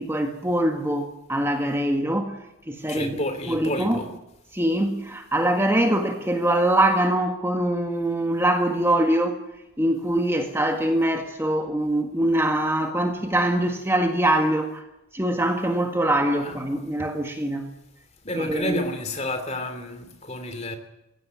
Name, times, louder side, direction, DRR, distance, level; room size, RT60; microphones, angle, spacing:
voice 1, 0.0-2.4 2.7-4.0 4.5-9.4 9.8-14.8 15.1-17.7 18.3-18.8, right 1 dB, 10° right, 4 dB, 1.7 m, -23 dB
voice 2, 2.9-4.1 16.4-16.6 18.2-20.8, left 1 dB, 30° left, 9 dB, 2.8 m, -30 dB
21.5 x 16.5 x 9.5 m, 0.90 s
head